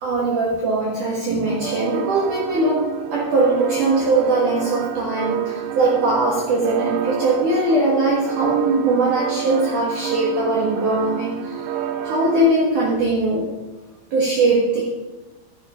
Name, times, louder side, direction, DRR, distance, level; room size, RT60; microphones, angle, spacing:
voice 1, 0.0-2.8 3.1-11.7 12.0-13.5 14.1-14.8, right 2 dB, 60° right, -3 dB, 2.2 m, -20 dB
sound 1, 1.5-12.5, right 9 dB, 90° right, 3.3 m, -28 dB
11.5 x 9.1 x 4.9 m, 1.1 s
omnidirectional pair, 5.4 m